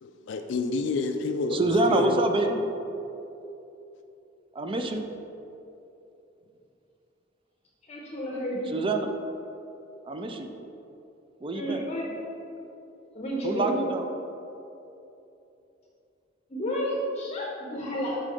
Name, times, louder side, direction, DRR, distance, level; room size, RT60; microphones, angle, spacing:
voice 1, 0.0-2.2, left 3 dB, 65° left, 6 dB, 0.3 m, -29 dB
voice 2, 1.5-2.6 4.5-5.1 8.7-9.1 10.0-10.5 11.4-11.8 13.4-14.1, right 2 dB, 30° right, 5 dB, 0.4 m, -26 dB
voice 3, 7.9-8.8 11.5-12.2 13.1-13.8 16.5-18.2, equal, 35° left, -3 dB, 0.7 m, -31 dB
5.5 x 3.7 x 5.1 m, 2.9 s
head